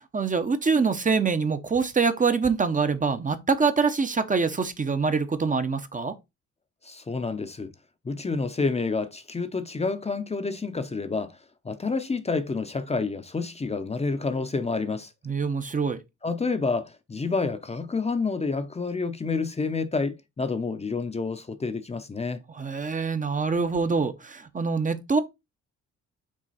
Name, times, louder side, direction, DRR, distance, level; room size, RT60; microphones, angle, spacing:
voice 1, 0.0-6.1 15.3-16.0 22.5-25.2, right 5 dB, 25° right, 0.8 m, -25 dB
voice 2, 6.8-7.7 8.0-11.4 11.6-15.1 16.2-22.4, left 4 dB, 20° left, 0.7 m, -29 dB
6.3 x 3.7 x 4.1 m
cardioid pair, 90°, 30 cm